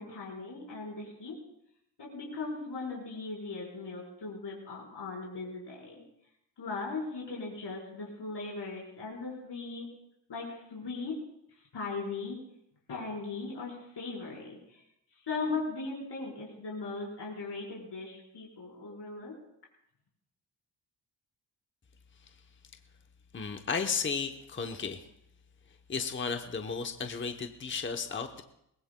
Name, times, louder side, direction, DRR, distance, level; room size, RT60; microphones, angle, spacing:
voice 1, 0.0-1.4 2.0-6.0 6.6-9.9 10.3-11.2 11.5-12.4 12.9-14.8 15.3-19.4, left 3 dB, 70° left, -4 dB, 4.4 m, -38 dB
voice 2, 23.3-25.0 25.9-28.4, left 5 dB, 25° left, 6 dB, 0.8 m, -34 dB
22.5 x 20.0 x 2.2 m, 0.76 s
wide cardioid pair, 140°, 43 cm